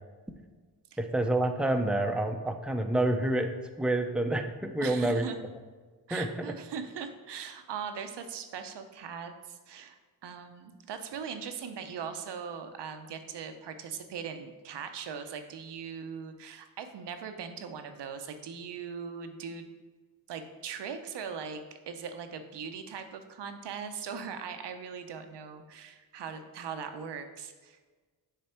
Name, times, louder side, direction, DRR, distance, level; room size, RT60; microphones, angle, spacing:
voice 1, 1.0-5.2 6.1-6.3, right 1 dB, ahead, 5 dB, 0.5 m, -28 dB
voice 2, 4.8-5.4 6.1-19.7 20.3-27.8, right 6 dB, 75° right, 8 dB, 0.7 m, -40 dB
6.7 x 3.3 x 4.4 m, 1.4 s
cardioid pair, 60°, 42 cm